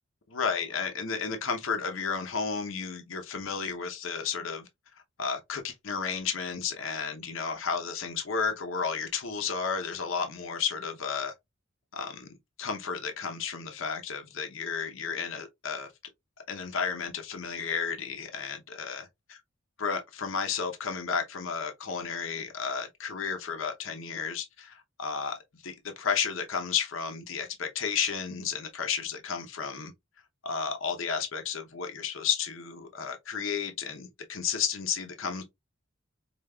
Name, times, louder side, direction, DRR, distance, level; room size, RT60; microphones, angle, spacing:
voice 1, 0.3-4.7 5.2-11.3 11.9-15.9 16.5-19.0 19.8-29.9 30.4-35.4, left 6 dB, 70° left, 0.7 m, -32 dB
5.1 x 2.8 x 2.2 m
head